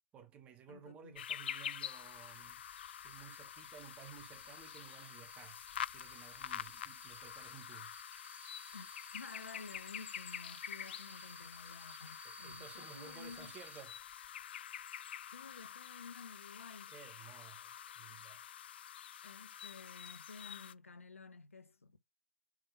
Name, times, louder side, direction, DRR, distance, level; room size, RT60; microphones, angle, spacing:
voice 1, 0.1-2.6 3.0-5.6 5.9-8.0 12.2-14.0 16.9-18.5, right 8 dB, 15° right, 0.9 m, -55 dB
voice 2, 0.7-1.2 8.7-13.5 15.3-16.9 19.2-22.0, left 4 dB, 70° left, 1.0 m, -53 dB
sound 1, 1.1-20.7, left 10 dB, 45° left, 0.3 m, -47 dB
sound 2, 2.0-13.8, right 4 dB, 60° right, 1.5 m, -59 dB
4.7 x 3.6 x 5.6 m
figure-of-eight pair, 125°, 8 cm